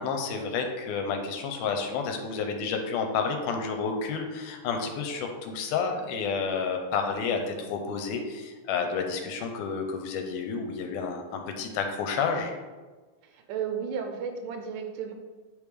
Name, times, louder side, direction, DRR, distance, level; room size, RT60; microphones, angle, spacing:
voice 1, 0.0-12.5, left 5 dB, 85° left, 4 dB, 2.1 m, -30 dB
voice 2, 13.2-15.1, right 7 dB, 80° right, 5 dB, 2.1 m, -33 dB
8.5 x 3.5 x 3.3 m, 1.3 s
omnidirectional pair, 3.7 m